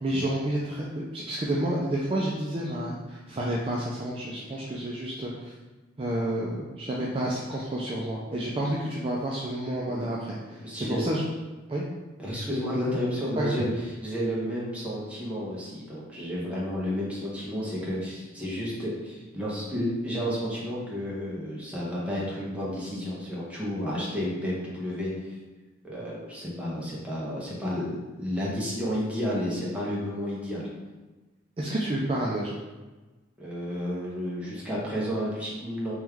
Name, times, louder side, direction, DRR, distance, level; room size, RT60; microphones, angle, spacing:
voice 1, 0.0-5.5 6.0-10.4 10.7-11.2 11.7-11.8 13.4-13.6 31.6-32.5, right 1 dB, 30° right, -4 dB, 0.4 m, -30 dB
voice 2, 10.6-11.0 12.2-25.4 25.8-30.7 33.4-36.0, equal, 5° right, -6 dB, 1.0 m, -31 dB
3.2 x 3.0 x 3.5 m, 1.2 s
head